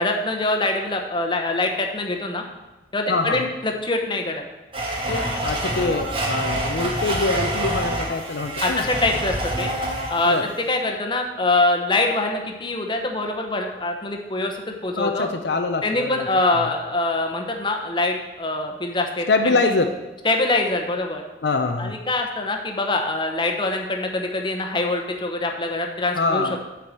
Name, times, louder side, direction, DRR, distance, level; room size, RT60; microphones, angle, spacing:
voice 1, 0.0-2.4 2.9-4.4 8.6-9.7 10.1-15.3 15.8-19.7 20.2-21.2 21.8-26.6, left 2 dB, 25° left, 2 dB, 1.0 m, -24 dB
voice 2, 3.1-3.4 5.1-8.8 10.2-10.5 15.0-16.3 19.3-19.9 21.4-22.0 26.2-26.6, left 3 dB, 65° left, 6 dB, 0.5 m, -24 dB
Domestic sounds home sounds, 4.7-10.4, right 1 dB, 30° right, 1.4 m, -26 dB
8.7 x 4.7 x 7.5 m, 1.1 s
head